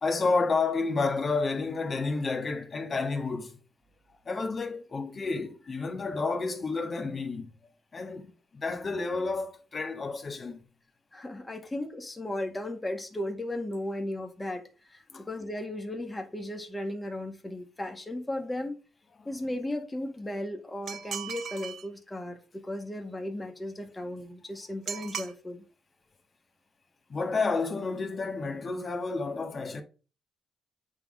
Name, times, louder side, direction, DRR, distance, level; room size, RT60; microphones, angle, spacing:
voice 1, 0.0-3.6 4.3-7.5 7.9-10.6 15.1-15.2 19.2-19.3 27.1-29.8, left 4 dB, 40° left, 1.8 m, -30 dB
voice 2, 11.1-18.8 19.3-25.6, left 1 dB, 15° left, 1.8 m, -36 dB
sound 1, 20.9-21.9 24.9-25.3, right 8 dB, 60° right, 0.9 m, -37 dB
8.8 x 3.9 x 5.1 m
cardioid pair, 90°, 0 cm